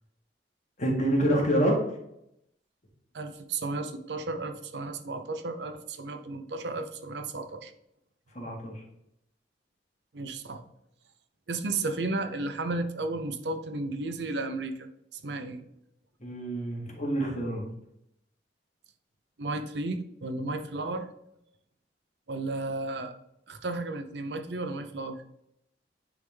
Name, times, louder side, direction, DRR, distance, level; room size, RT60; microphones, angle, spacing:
voice 1, 0.8-1.8 8.3-8.8 16.2-17.7, right 1 dB, 40° left, -1 dB, 1.7 m, -27 dB
voice 2, 3.1-7.7 10.1-10.6 11.5-14.9 15.1-15.6 19.4-21.1 22.3-23.1 23.5-25.2, right 2 dB, 65° right, 8 dB, 0.7 m, -33 dB
9.7 x 3.6 x 3.4 m, 0.79 s
head